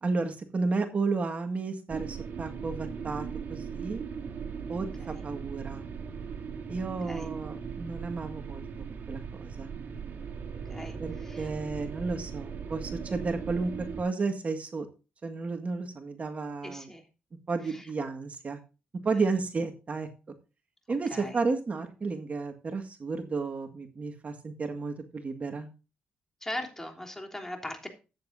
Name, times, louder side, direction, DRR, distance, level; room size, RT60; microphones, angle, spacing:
voice 1, 0.0-4.0 4.7-5.9 6.7-9.8 11.0-14.9 15.2-16.9 17.5-18.6 19.0-20.1 20.9-25.7, right 4 dB, 40° right, 6 dB, 1.9 m, -32 dB
sound 1, 1.9-14.0, right 6 dB, 60° right, 2.8 m, -39 dB
voice 2, 10.7-11.5 16.6-17.1 17.6-17.9 21.1-21.4 26.4-27.9, left 1 dB, 10° left, 3 dB, 3.4 m, -39 dB
14.0 x 9.4 x 2.6 m, 0.31 s
cardioid pair, 80°, 4 cm